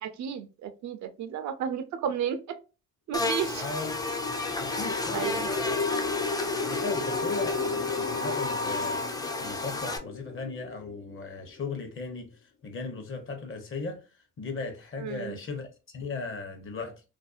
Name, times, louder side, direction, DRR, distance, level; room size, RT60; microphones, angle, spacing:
voice 1, 0.0-2.6 3.1-3.6 5.1-5.5 15.0-15.4, right 8 dB, 65° right, 0.5 m, -32 dB
Buzz, 3.1-10.0, left 2 dB, 15° left, 0.3 m, -32 dB
sound 1, 3.3-11.5, left 4 dB, 75° left, 0.6 m, -34 dB
voice 2, 3.6-3.9 4.6-5.8 6.7-14.0 14.4-17.0, left 4 dB, 45° left, 0.8 m, -37 dB
2.5 x 2.0 x 2.4 m
cardioid pair, 90°, 30 cm